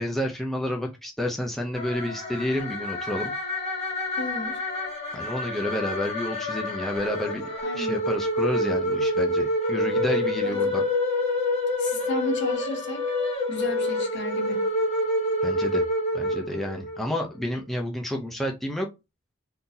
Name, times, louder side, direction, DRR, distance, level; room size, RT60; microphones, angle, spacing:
voice 1, 0.0-3.3 5.1-7.4 7.7-10.8 15.4-15.8 16.1-18.9, left 1 dB, ahead, 0.5 m, -30 dB
sound 1, 1.7-17.0, left 1 dB, 30° left, 1.5 m, -27 dB
voice 2, 4.2-4.6 7.6-8.0 10.4-10.6 11.8-13.0 13.5-14.7, left 1 dB, 60° left, 1.2 m, -33 dB
3.7 x 2.8 x 2.7 m
head